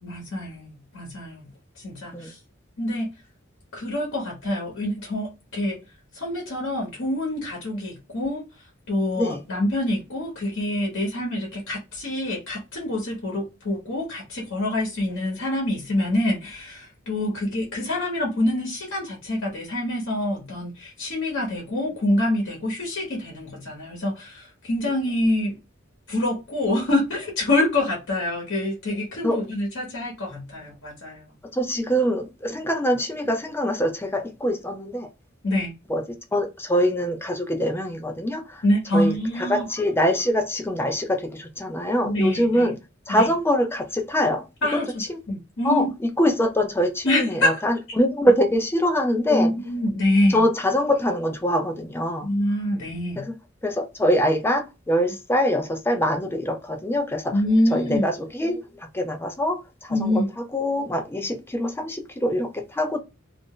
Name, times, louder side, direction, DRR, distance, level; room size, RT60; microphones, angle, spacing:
voice 1, 0.0-1.5 1.7-2.4 2.8-3.1 3.7-5.8 6.1-25.6 26.1-31.2 35.4-35.7 38.6-39.7 42.0-42.7 43.1-43.3 44.6-45.9 47.0-47.6 49.3-50.4 52.2-53.3 57.3-58.1 59.9-60.3, left 1 dB, 65° left, 1.0 m, -26 dB
voice 2, 31.5-35.1 35.9-38.6 38.9-42.8 43.1-44.5 44.7-44.8 45.6-49.5 50.3-52.3 53.2-53.3 53.6-57.4 57.7-63.0, equal, 10° left, 0.4 m, -24 dB
2.5 x 2.1 x 3.6 m
head